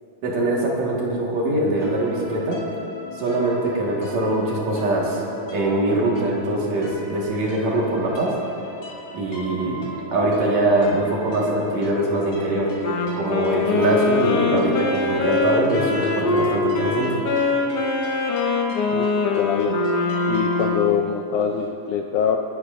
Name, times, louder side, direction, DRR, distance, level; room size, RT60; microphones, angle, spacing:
voice 1, 0.2-2.6 3.1-5.2 5.5-8.4 9.1-9.8 10.1-12.7 13.1-17.2, right 2 dB, 55° right, -3 dB, 2.7 m, -22 dB
sound 1, 1.8-20.7, left 1 dB, 45° left, 2.5 m, -37 dB
Wind instrument woodwind instrument, 12.8-21.1, left 3 dB, 65° left, 1.7 m, -23 dB
voice 2, 18.9-19.8 20.3-22.4, left 7 dB, 80° left, 3 dB, 1.8 m, -24 dB
24.5 x 11.5 x 2.5 m, 2.7 s
omnidirectional pair, 4.0 m